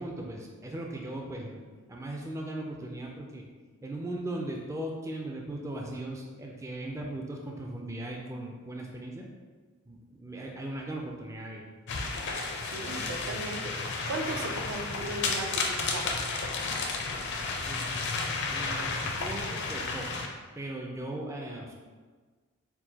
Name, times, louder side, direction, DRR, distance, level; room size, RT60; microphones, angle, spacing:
voice 1, 0.0-3.5 3.8-9.3 9.9-11.7 17.7-17.9 18.5-20.2 20.6-21.8, right 1 dB, 15° right, 0 dB, 0.3 m, -38 dB
sound 1, 11.9-20.3, left 3 dB, 55° left, 0.5 m, -32 dB
voice 2, 12.6-16.1, right 2 dB, 75° right, 3 dB, 0.5 m, -37 dB
4.6 x 2.1 x 3.9 m, 1.4 s
head